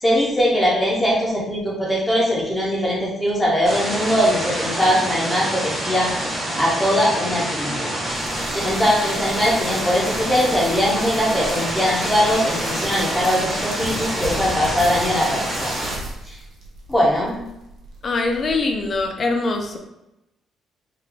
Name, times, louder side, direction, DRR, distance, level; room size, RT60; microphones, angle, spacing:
voice 1, 0.0-6.1 6.6-7.9 8.5-15.7 16.3-16.4 16.9-17.4, equal, 10° left, -5 dB, 1.1 m, -21 dB
sound 1, 3.6-16.0, right 1 dB, 15° right, 1.1 m, -27 dB
sound 2, 8.1-19.1, right 2 dB, 65° right, 0.7 m, -36 dB
voice 2, 18.0-19.8, left 3 dB, 35° left, 4 dB, 0.5 m, -23 dB
3.3 x 2.2 x 3.6 m, 0.88 s
cardioid pair, 135°, 0 cm